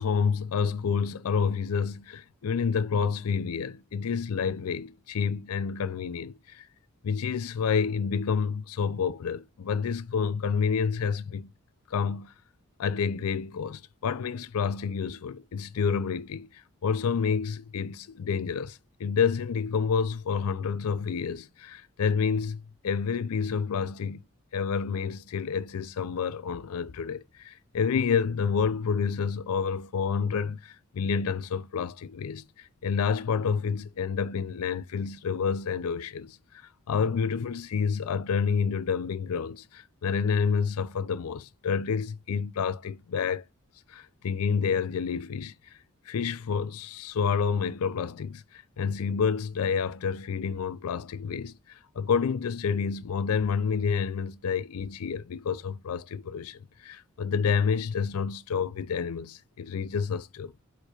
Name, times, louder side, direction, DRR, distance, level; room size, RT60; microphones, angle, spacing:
voice 1, 0.0-6.7 7.0-11.5 11.9-12.3 12.8-24.2 24.5-36.4 36.9-43.4 43.9-45.5 46.1-60.5, left 6 dB, 80° left, 0.4 m, -29 dB
4.6 x 4.6 x 2.3 m
head